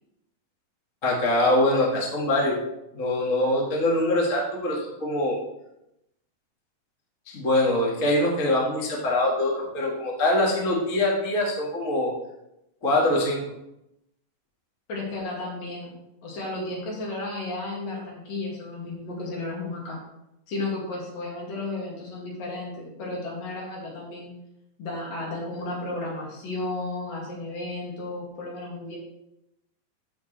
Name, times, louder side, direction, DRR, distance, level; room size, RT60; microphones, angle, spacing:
voice 1, 1.0-2.6 2.9-5.4 7.3-12.1 12.8-13.4, left 1 dB, 35° left, -3 dB, 1.4 m, -23 dB
voice 2, 14.9-16.0 16.2-20.0 20.5-24.3 24.8-29.0, left 2 dB, 75° left, -4 dB, 3.9 m, -33 dB
14.0 x 5.1 x 3.3 m, 0.86 s
omnidirectional pair, 4.0 m